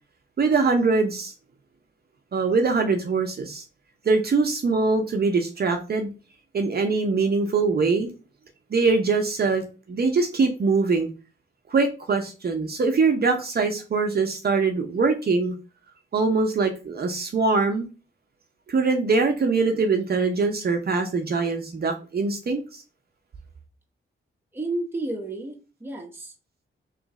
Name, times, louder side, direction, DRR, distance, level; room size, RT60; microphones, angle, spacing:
voice 1, 0.4-1.3 2.3-3.6 4.0-6.1 6.5-8.1 8.7-11.1 11.7-15.5 16.1-17.9 18.7-22.8, right 4 dB, 45° right, 4 dB, 0.7 m, -23 dB
voice 2, 24.5-26.3, right 2 dB, 10° right, 0 dB, 0.9 m, -31 dB
3.2 x 3.0 x 3.6 m, 0.33 s
wide cardioid pair, 125°, 21 cm